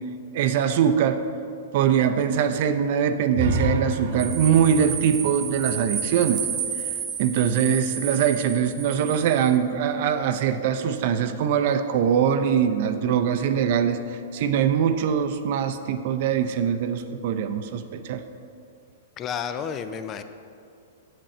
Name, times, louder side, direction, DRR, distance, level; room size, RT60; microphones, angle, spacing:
voice 1, 0.3-1.2 1.7-6.4 7.2-18.2, right 8 dB, 50° right, 9 dB, 0.5 m, -22 dB
sound 1, 3.3-7.2, equal, 70° right, 0.9 m, -30 dB
sound 2, 4.2-9.6, right 7 dB, 30° right, 1.0 m, -32 dB
voice 2, 19.2-20.2, left 7 dB, 25° left, 10 dB, 0.4 m, -31 dB
7.8 x 7.7 x 4.3 m, 2.5 s
hypercardioid pair, 145°, 0 cm